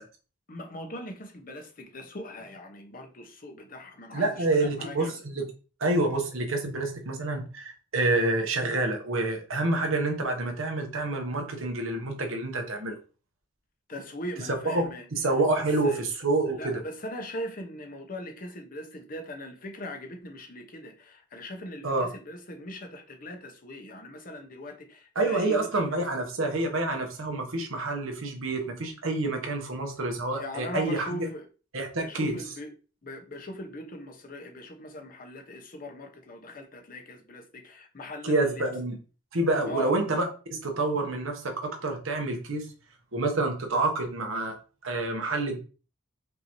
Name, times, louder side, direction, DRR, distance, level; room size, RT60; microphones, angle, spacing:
voice 1, 0.5-5.1 13.9-15.1 15.6-16.0 16.6-26.1 30.3-31.5 32.0-32.7 33.0-38.7 39.6-39.9, left 1 dB, 40° left, 0.8 m, -40 dB
voice 2, 4.1-5.4 5.8-13.0 14.6-16.8 21.8-22.1 25.1-31.3 31.7-32.4 38.2-39.0 39.3-42.7 43.1-44.6 44.8-45.6, right 2 dB, 75° right, 1.1 m, -28 dB
5.3 x 2.7 x 3.0 m
head